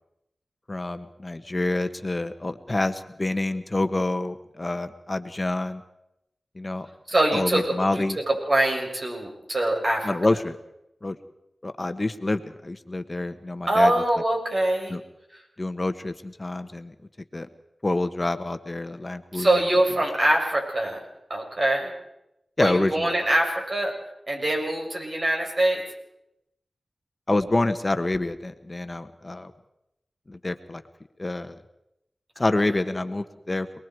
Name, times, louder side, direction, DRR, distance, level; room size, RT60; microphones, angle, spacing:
voice 1, 0.7-5.8 6.6-6.9 7.3-8.2 10.0-10.6 11.0-11.2 11.6-13.9 14.9-15.0 15.6-16.9 17.3-17.5 17.8-19.5 22.6-23.1 27.3-29.5 30.3-30.8 31.2-31.5 32.4-33.8, left 2 dB, 35° left, 9 dB, 1.4 m, -27 dB
voice 2, 7.1-10.1 13.7-15.0 19.3-21.0 21.3-21.9 22.6-23.9 24.3-25.8, right 1 dB, 55° right, 0 dB, 7.5 m, -23 dB
29.0 x 21.0 x 4.8 m, 0.85 s
cardioid pair, 40°, 0 cm